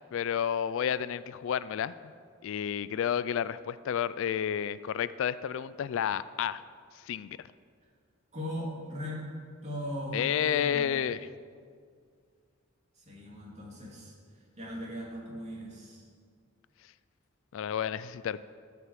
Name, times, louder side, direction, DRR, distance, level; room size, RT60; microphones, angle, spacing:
voice 1, 0.0-1.9 2.4-6.6 6.9-7.5 10.1-11.3 17.5-18.4, left 8 dB, 65° left, 16 dB, 0.3 m, -31 dB
voice 2, 8.3-9.2 9.6-10.9 13.0-16.1, equal, 35° right, -4 dB, 2.8 m, -39 dB
13.0 x 5.9 x 7.4 m, 2.1 s
head